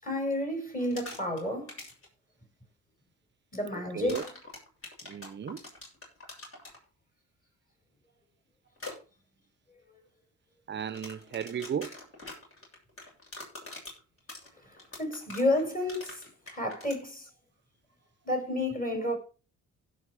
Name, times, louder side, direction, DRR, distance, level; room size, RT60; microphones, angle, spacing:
voice 1, 0.0-1.8 3.5-4.3 14.6-17.3 18.2-19.2, left 1 dB, 30° left, 6.0 m, -31 dB
sound 1, 0.8-1.4 1.7-2.1 4.1-6.8 8.8-8.9 10.8-17.0, left 2 dB, 45° left, 7.3 m, -44 dB
voice 2, 3.7-4.2 5.0-5.6 10.7-12.0, right 8 dB, 35° right, 0.7 m, -35 dB
16.5 x 5.6 x 4.8 m
cardioid pair, 90°, 30 cm